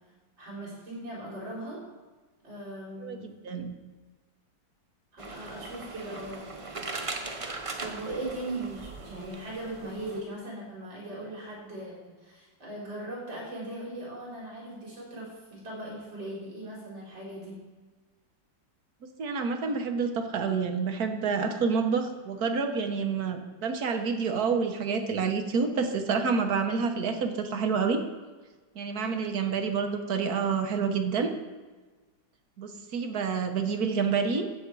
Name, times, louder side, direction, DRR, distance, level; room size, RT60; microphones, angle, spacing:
voice 1, 0.4-1.8 2.4-3.3 5.1-6.5 7.8-17.6, right 1 dB, 75° right, -5 dB, 5.0 m, -39 dB
voice 2, 3.0-3.7 19.2-28.0 28.7-31.3 32.6-34.4, right 5 dB, 55° right, 6 dB, 1.6 m, -28 dB
sound 1, 5.2-10.2, right 3 dB, 35° right, 0.5 m, -39 dB
14.0 x 8.1 x 4.8 m, 1.3 s
omnidirectional pair, 2.1 m